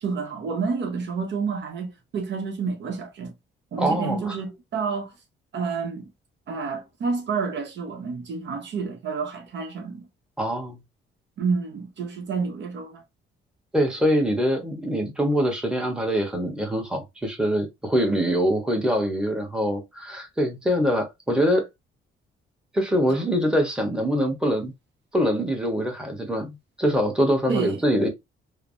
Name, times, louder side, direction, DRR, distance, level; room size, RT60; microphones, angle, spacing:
voice 1, 0.0-3.3 3.7-5.1 5.5-6.1 6.5-10.1 11.4-13.0 23.1-23.2 27.5-27.8, right 5 dB, 65° right, 0.8 m, -29 dB
voice 2, 3.8-4.4 10.4-10.8 13.7-21.7 22.7-24.7 25.1-28.1, equal, 5° right, 1.0 m, -24 dB
3.2 x 2.0 x 2.5 m
cardioid pair, 90°, 20 cm